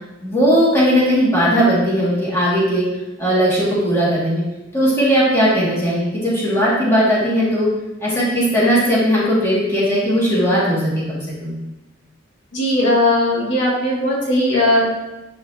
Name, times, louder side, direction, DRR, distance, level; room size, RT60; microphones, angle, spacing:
voice 1, 0.2-2.8 3.2-4.4 4.7-7.7 8.0-11.5, equal, 15° left, -9 dB, 2.7 m, -17 dB
voice 2, 12.5-14.8, left 1 dB, 70° left, -6 dB, 2.5 m, -17 dB
11.0 x 4.8 x 3.1 m, 1.0 s
head